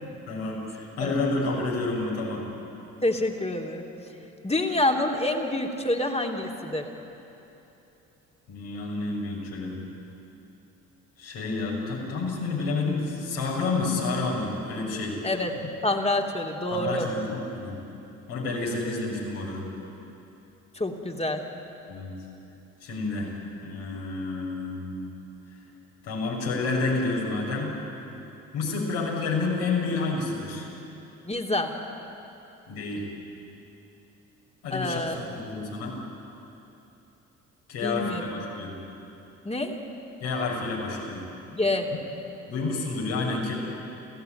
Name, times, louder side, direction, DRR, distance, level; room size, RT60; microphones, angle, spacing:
voice 1, 0.3-2.5 8.5-9.8 11.2-15.2 16.7-17.8 18.3-19.7 21.9-22.2 22.8-23.3 23.6-25.1 26.0-27.7 28.5-30.7 32.7-33.1 34.6-35.0 35.4-36.0 37.7-38.8 40.2-41.2 42.5-43.5, left 3 dB, 70° left, -3 dB, 6.5 m, -29 dB
voice 2, 3.0-3.8 4.4-6.9 15.2-15.5 15.8-17.1 20.7-21.5 31.2-31.7 34.7-35.2 37.8-38.2 39.4-39.8 41.5-41.9, left 1 dB, 15° left, 2 dB, 3.0 m, -27 dB
29.5 x 16.0 x 9.2 m, 2.9 s
hypercardioid pair, 50°, 40 cm